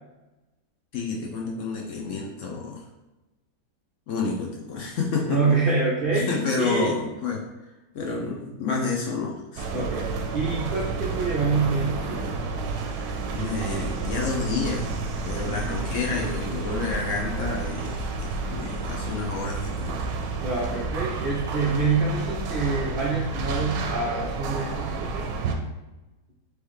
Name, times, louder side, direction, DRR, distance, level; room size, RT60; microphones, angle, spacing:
voice 1, 0.9-2.8 4.1-5.6 6.1-7.4 7.9-9.9 13.3-14.9 15.2-20.1, left 4 dB, 65° left, -1 dB, 0.8 m, -29 dB
voice 2, 5.3-6.3 6.6-6.9 9.7-10.1 10.3-12.4 15.5-15.6 20.4-25.3, right 4 dB, 65° right, -4 dB, 0.5 m, -26 dB
sound 1, 9.6-25.5, right 4 dB, 85° right, 1.2 m, -30 dB
4.7 x 3.1 x 3.1 m, 1.1 s
omnidirectional pair, 1.8 m